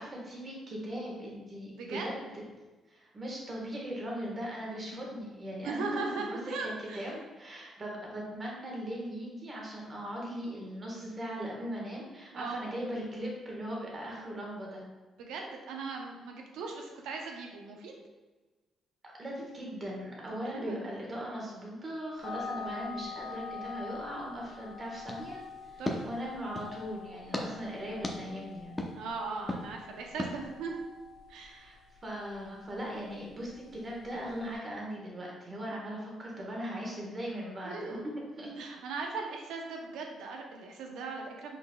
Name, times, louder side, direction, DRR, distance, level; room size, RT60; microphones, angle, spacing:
voice 1, 0.0-2.4 2.9-6.4 6.9-14.8 19.0-25.4 25.7-28.8 31.6-31.8 32.0-38.5, equal, 35° right, -2 dB, 1.4 m, -39 dB
voice 2, 5.6-7.1 12.3-12.6 15.2-17.9 20.3-20.9 25.8-26.1 28.9-30.8 31.3-31.7 37.6-38.1 38.6-41.6, right 4 dB, 85° right, 1 dB, 0.6 m, -39 dB
sound 1, 22.2-34.6, left 5 dB, 75° left, 1.0 m, -46 dB
sound 2, 25.0-26.8 27.3-27.5 28.0-28.2 28.8-28.9 29.5-29.6 30.2-30.3, left 1 dB, 15° left, 0.6 m, -36 dB
5.2 x 4.0 x 2.2 m, 1.2 s
cardioid pair, 90°, 0 cm